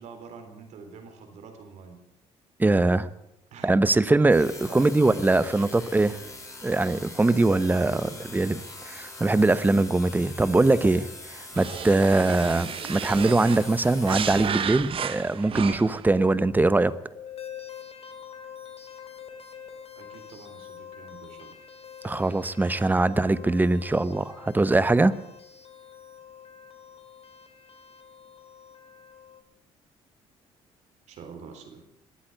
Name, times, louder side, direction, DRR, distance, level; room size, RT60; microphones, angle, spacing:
voice 1, 0.0-2.0 3.5-3.7 4.7-6.2 7.7-8.6 9.2-9.9 10.3-11.0 20.0-21.6 31.1-31.8, right 5 dB, 70° right, 6 dB, 3.6 m, -46 dB
voice 2, 2.6-3.1 3.6-6.2 6.6-11.1 11.3-16.9 22.0-25.1, right 2 dB, 15° right, 15 dB, 0.9 m, -22 dB
sound 1, 4.3-14.8, left 2 dB, 25° left, 4.6 m, -43 dB
sound 2, 11.5-16.1, right 8 dB, 50° right, 0.8 m, -33 dB
sound 3, 17.1-29.4, left 8 dB, 55° left, 2.5 m, -45 dB
21.5 x 8.5 x 7.9 m, 0.84 s
cardioid pair, 80°, 12 cm